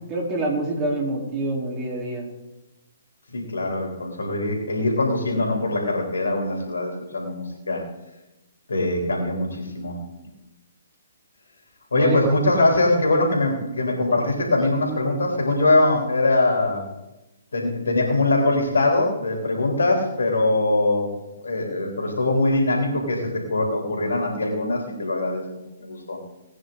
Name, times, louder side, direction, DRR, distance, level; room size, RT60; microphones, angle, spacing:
voice 1, 0.1-2.3 11.9-12.4, right 2 dB, 25° right, -1 dB, 4.0 m, -26 dB
voice 2, 3.3-7.8 8.7-10.0 11.9-16.8 17.5-21.1 21.4-25.4 25.8-26.2, left 2 dB, 75° left, 0 dB, 3.6 m, -22 dB
20.0 x 9.7 x 4.0 m, 0.98 s
figure-of-eight pair, 130°, 0 cm